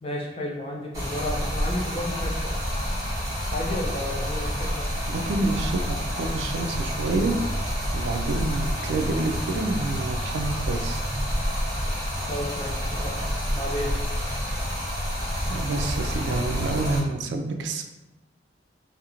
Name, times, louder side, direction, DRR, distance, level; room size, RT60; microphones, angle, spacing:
voice 1, 0.0-2.5 3.5-4.9 12.3-13.1 13.5-13.9, left 1 dB, 30° left, -2 dB, 0.4 m, -32 dB
Stream, 0.9-17.0, equal, 20° right, 0.8 m, -28 dB
voice 2, 5.1-7.4 7.9-11.0 15.5-17.8, right 3 dB, 75° right, 5 dB, 0.3 m, -28 dB
2.4 x 2.1 x 2.9 m, 1.1 s
head